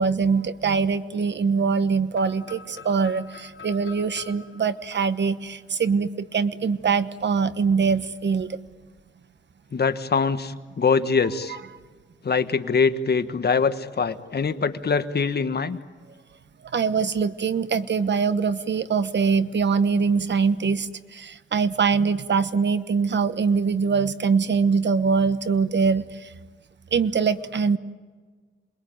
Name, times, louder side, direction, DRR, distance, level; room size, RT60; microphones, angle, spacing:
voice 1, 0.0-8.6 16.7-26.3 26.9-27.8, right 5 dB, 60° right, 13 dB, 1.2 m, -23 dB
sound 1, 2.1-6.0, left 6 dB, 75° left, 3.0 m, -46 dB
voice 2, 9.7-11.6 12.2-15.8, left 5 dB, 55° left, 10 dB, 1.4 m, -23 dB
28.0 x 21.5 x 9.5 m, 1.4 s
cardioid pair, 80°, 20 cm